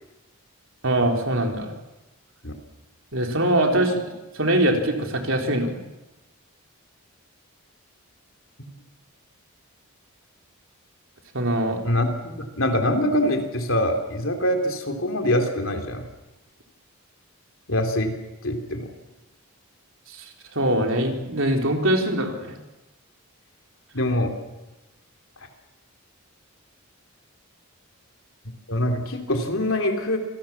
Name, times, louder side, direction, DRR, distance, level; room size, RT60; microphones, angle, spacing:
voice 1, 0.8-1.7 3.1-3.9 4.3-5.8 11.3-11.8 20.1-22.6, right 1 dB, 60° right, 3 dB, 3.8 m, -23 dB
voice 2, 11.8-16.1 17.7-18.1 18.4-18.9 23.9-24.3 28.7-30.2, left 1 dB, 65° left, 4 dB, 3.4 m, -24 dB
26.5 x 18.0 x 7.3 m, 1.0 s
head